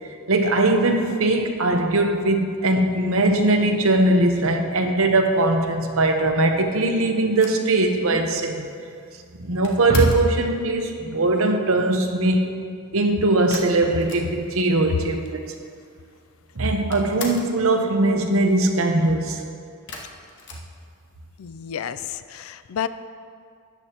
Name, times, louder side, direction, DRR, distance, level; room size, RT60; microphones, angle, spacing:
voice 1, 0.3-8.7 9.4-12.5 12.9-15.5 16.6-19.4, right 2 dB, 80° right, 4 dB, 0.9 m, -20 dB
sound 1, 7.3-10.4 13.5-14.7 14.9-15.0 15.2-16.0 16.3-17.6 19.9-21.4, left 4 dB, 60° left, 1.1 m, -39 dB
voice 2, 21.4-22.9, left 8 dB, 85° left, 13 dB, 0.4 m, -29 dB
13.0 x 9.2 x 3.0 m, 2.3 s
head